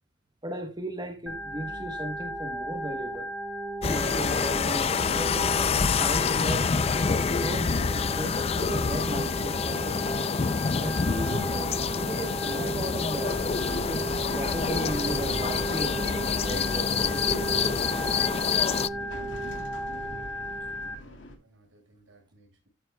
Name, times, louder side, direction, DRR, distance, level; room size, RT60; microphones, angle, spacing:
voice 1, 0.4-3.3 3.8-5.7 6.0-6.7 7.2-10.0 10.8-13.4 13.9-14.1 14.3-17.4, right 1 dB, 20° right, 1.2 m, -36 dB
Organ, 1.3-20.9, right 1 dB, ahead, 2.6 m, -35 dB
sound 1, 3.8-18.9, left 5 dB, 30° left, 0.4 m, -27 dB
sound 2, 13.3-21.3, equal, 65° left, 3.2 m, -39 dB
voice 2, 20.8-22.7, right 2 dB, 80° right, 6.9 m, -61 dB
13.5 x 9.3 x 2.3 m
head